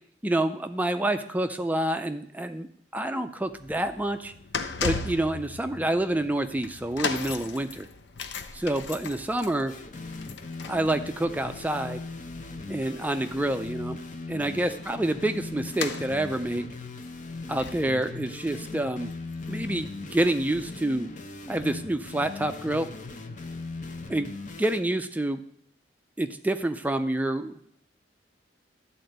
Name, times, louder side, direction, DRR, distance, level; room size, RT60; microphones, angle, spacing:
voice 1, 0.2-4.3 4.8-7.9 8.5-9.7 10.7-12.0 12.7-14.0 14.3-16.7 17.5-19.1 19.5-21.1 21.5-22.9 24.1-24.3 24.6-25.4 26.2-27.6, right 1 dB, 10° right, 8 dB, 0.4 m, -28 dB
sound 1, 3.5-19.8 20.1-20.3 21.1-21.2, left 5 dB, 85° left, 0.7 m, -38 dB
sound 2, 9.7-24.8, left 3 dB, 45° left, 0.8 m, -39 dB
12.5 x 4.3 x 7.9 m, 0.68 s
head